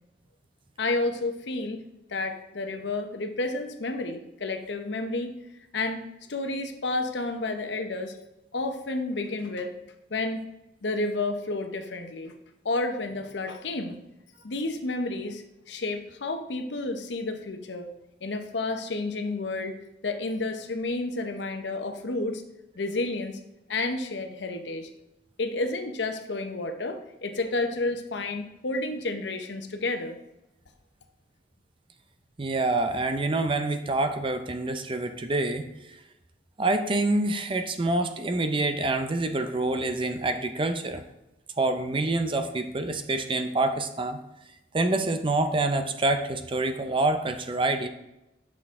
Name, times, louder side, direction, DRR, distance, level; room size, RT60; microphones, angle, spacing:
voice 1, 0.8-1.8 2.1-5.4 5.7-6.0 6.3-8.2 8.5-9.7 10.1-10.4 10.8-12.3 12.6-14.0 14.4-17.9 18.2-19.7 20.0-22.4 22.8-23.4 23.7-24.9 25.4-30.2, left 2 dB, 80° left, 7 dB, 0.8 m, -30 dB
voice 2, 32.4-35.7 36.6-41.0 41.6-44.2 44.7-47.9, right 2 dB, 30° right, 8 dB, 0.6 m, -26 dB
8.2 x 6.1 x 3.7 m, 0.91 s
head